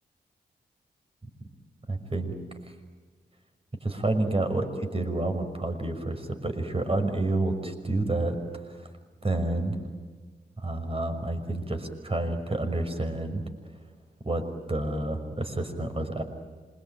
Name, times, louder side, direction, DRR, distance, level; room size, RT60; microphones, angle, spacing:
voice 1, 1.9-2.4 2.6-2.7 3.8-8.9 9.2-9.8 10.6-13.4 14.2-16.2, right 2 dB, 35° right, 6 dB, 6.0 m, -29 dB
26.5 x 23.5 x 9.1 m, 1.5 s
cardioid pair, 50°, 17 cm